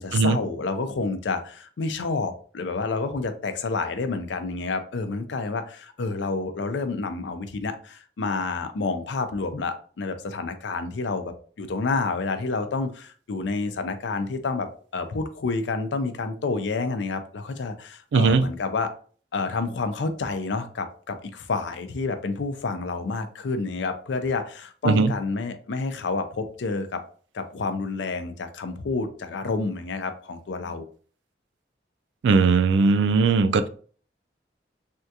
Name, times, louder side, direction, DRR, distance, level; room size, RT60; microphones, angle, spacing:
voice 1, 0.0-18.9 19.3-27.0 27.3-30.9, left 3 dB, 85° left, 9 dB, 0.5 m, -29 dB
voice 2, 18.1-18.5 24.8-25.1 32.2-33.7, right 4 dB, 90° right, 10 dB, 0.3 m, -19 dB
3.5 x 2.3 x 2.7 m, 0.44 s
head